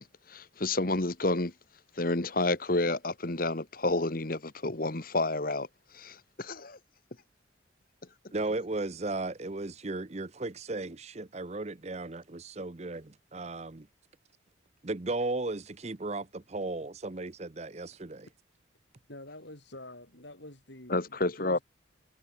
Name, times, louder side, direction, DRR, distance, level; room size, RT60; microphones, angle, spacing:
voice 1, 0.0-1.5 2.0-5.7 5.9-6.8 20.9-21.6, left 2 dB, 45° left, 1.6 m, -30 dB
voice 2, 8.3-13.9 14.8-18.3, right 2 dB, 35° right, 0.7 m, -35 dB
voice 3, 19.1-21.6, left 1 dB, 65° left, 7.0 m, -47 dB
head